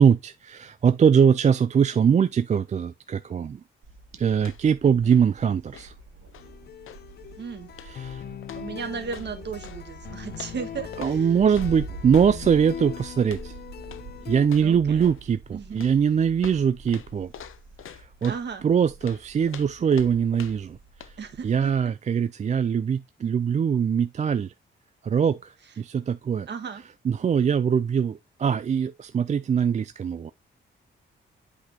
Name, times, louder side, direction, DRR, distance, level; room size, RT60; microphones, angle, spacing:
voice 1, 0.0-3.6 4.1-5.9 7.8-8.2 11.0-13.5 14.3-17.3 17.9-18.3 18.6-20.8 21.0-21.1 21.4-24.5 25.0-26.5 27.0-30.3, right 7 dB, 35° right, 0.4 m, -22 dB
Thunder, 3.8-21.9, right 2 dB, 80° right, 2.7 m, -44 dB
sound 1, 4.4-4.8 5.0-7.1 7.7-8.1 8.4-9.8 10.3-12.4 13.2-13.5 13.8-14.1 14.4-15.3 15.8-18.5 19.0-20.7 21.0-21.2, left 10 dB, 90° left, 0.7 m, -45 dB
voice 2, 4.8-5.2 7.4-7.7 8.5-11.3 14.6-15.1 15.5-15.8 18.3-18.6 21.2-21.9 26.5-26.8, right 6 dB, 60° right, 1.6 m, -36 dB
sound 2, 6.4-14.5, left 9 dB, 55° left, 0.4 m, -40 dB
8.3 x 5.1 x 2.8 m
wide cardioid pair, 155°, 20 cm